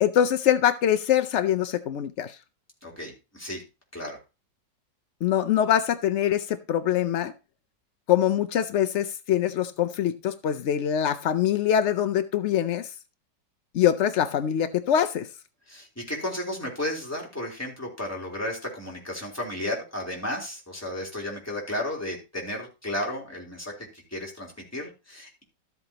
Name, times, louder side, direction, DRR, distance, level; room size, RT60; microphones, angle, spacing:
voice 1, 0.0-2.4 5.2-7.3 8.1-12.9 13.7-15.3, left 10 dB, 85° left, 10 dB, 0.6 m, -24 dB
voice 2, 2.8-3.6 3.9-4.2 15.7-25.4, left 1 dB, 10° left, -3 dB, 3.4 m, -33 dB
13.5 x 8.0 x 2.9 m, 0.27 s
omnidirectional pair, 1.9 m